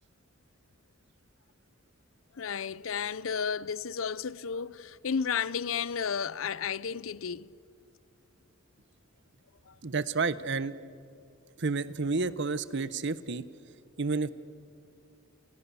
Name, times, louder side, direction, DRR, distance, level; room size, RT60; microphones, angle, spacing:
voice 1, 2.4-7.5 9.7-9.8, left 6 dB, 75° left, 0.6 m, -33 dB
voice 2, 9.8-10.7 11.6-13.4 14.0-14.3, right 4 dB, 60° right, 1.0 m, -30 dB
29.0 x 28.5 x 7.1 m
head